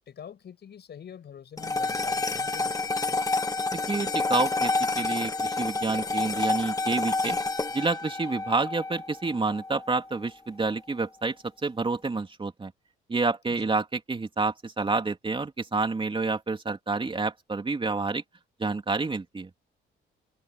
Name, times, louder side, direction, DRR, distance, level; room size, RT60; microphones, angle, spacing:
voice 1, 0.1-3.2 13.5-13.7, left 8 dB, 55° left, 7.8 m, -46 dB
sound 1, 1.6-10.1, left 3 dB, 15° left, 1.8 m, -29 dB
voice 2, 3.7-7.4 7.7-11.3 11.6-12.7 13.1-18.2 18.6-19.5, right 3 dB, 25° right, 3.4 m, -29 dB
open air
cardioid pair, 90°, 20 cm